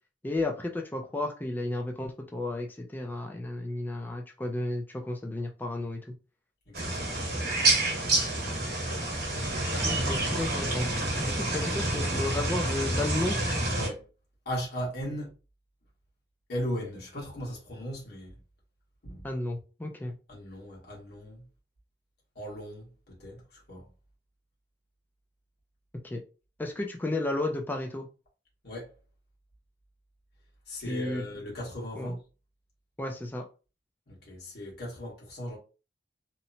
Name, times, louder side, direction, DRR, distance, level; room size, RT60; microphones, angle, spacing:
voice 1, 0.2-6.0 9.8-10.9 11.2-13.4 19.2-20.2 26.0-26.2 26.6-28.1 30.9-31.2 32.0-32.1 33.0-33.4, left 2 dB, 10° left, 0.3 m, -33 dB
voice 2, 6.7-7.2 13.7-14.1 14.4-15.3 16.5-18.4 19.0-19.2 20.3-21.4 22.3-22.9 23.2-23.8 28.6-28.9 30.7-32.2 34.1-35.6, equal, 60° left, 1.4 m, -37 dB
sound 1, 6.7-13.9, right 2 dB, 55° right, 1.0 m, -28 dB
2.9 x 2.1 x 2.7 m
head